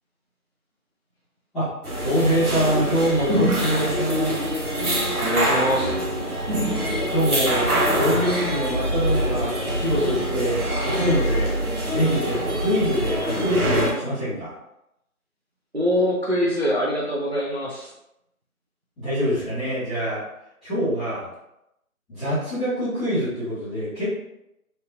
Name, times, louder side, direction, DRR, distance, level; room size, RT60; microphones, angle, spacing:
Ronda - Hotel Reception - Recepción de hotel (II), 1.8-13.9, equal, 90° right, 1.2 m, -24 dB
voice 1, 2.0-4.4 7.1-7.7 7.9-14.5 19.0-20.2 20.6-21.3 22.1-24.1, equal, ahead, -18 dB, 0.9 m, -24 dB
voice 2, 5.2-5.9 15.7-17.9, equal, 45° right, -5 dB, 0.5 m, -23 dB
3.3 x 2.8 x 2.6 m, 0.85 s
figure-of-eight pair, 170°, 44 cm